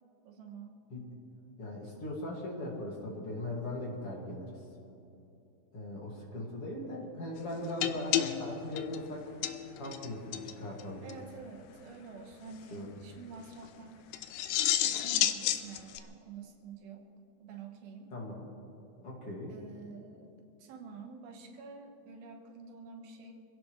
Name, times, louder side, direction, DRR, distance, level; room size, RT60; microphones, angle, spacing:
voice 1, 0.3-0.8 11.0-14.0 14.8-17.1 17.4-18.1 19.5-20.3 20.6-23.3, right 5 dB, 85° right, 3 dB, 3.2 m, -48 dB
voice 2, 1.6-4.5 5.7-9.3 9.8-11.0 12.7-13.0 18.1-18.4 19.0-19.5, left 1 dB, 45° left, -3 dB, 2.7 m, -39 dB
sound 1, 7.8-10.1 10.3-10.5 10.8-10.9 11.1-11.2 14.1-16.0, left 12 dB, 80° left, 2.2 m, -31 dB
26.0 x 16.5 x 3.2 m, 2.8 s
omnidirectional pair, 4.2 m